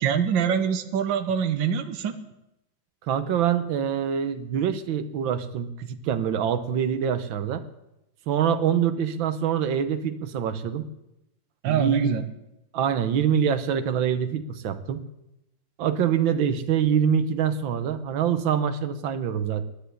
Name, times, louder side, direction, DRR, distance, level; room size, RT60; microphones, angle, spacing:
voice 1, 0.0-2.2 11.6-12.3, right 7 dB, 75° right, 8 dB, 1.6 m, -24 dB
voice 2, 3.1-7.6 8.3-10.9 11.7-12.2 12.7-15.0 15.8-19.6, right 8 dB, 90° right, 11 dB, 1.7 m, -25 dB
11.0 x 10.0 x 8.2 m, 0.88 s
omnidirectional pair, 2.1 m